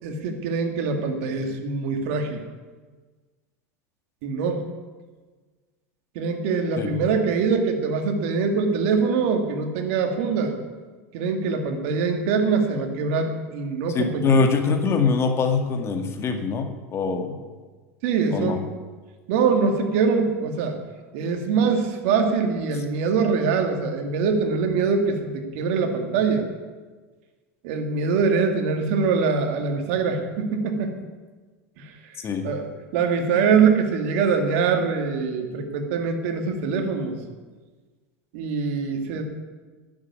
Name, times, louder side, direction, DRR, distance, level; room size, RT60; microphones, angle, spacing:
voice 1, 0.0-2.4 4.2-4.6 6.1-10.6 11.1-14.4 18.0-18.7 19.3-20.8 21.1-26.5 27.6-31.0 31.8-31.9 32.4-37.2 38.3-39.2, right 5 dB, 70° right, 4 dB, 2.3 m, -23 dB
voice 2, 13.9-17.4 18.3-18.6 32.2-32.4, left 4 dB, 35° left, 5 dB, 1.9 m, -23 dB
11.0 x 7.4 x 9.6 m, 1.4 s
hypercardioid pair, 100°, 8 cm